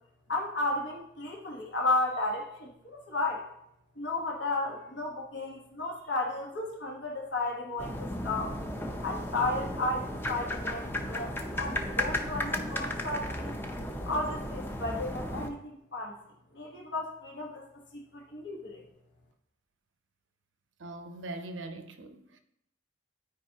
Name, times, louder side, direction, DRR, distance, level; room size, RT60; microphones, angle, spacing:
voice 1, 0.3-3.5 4.0-8.5 9.0-13.6 14.0-16.1 16.5-17.6 17.9-18.8, left 2 dB, 70° left, 1.3 m, -33 dB
sound 1, 7.8-15.5, left 1 dB, 10° left, 0.6 m, -35 dB
voice 2, 20.8-22.4, right 2 dB, 90° right, 0.8 m, -41 dB
12.0 x 4.9 x 2.8 m
head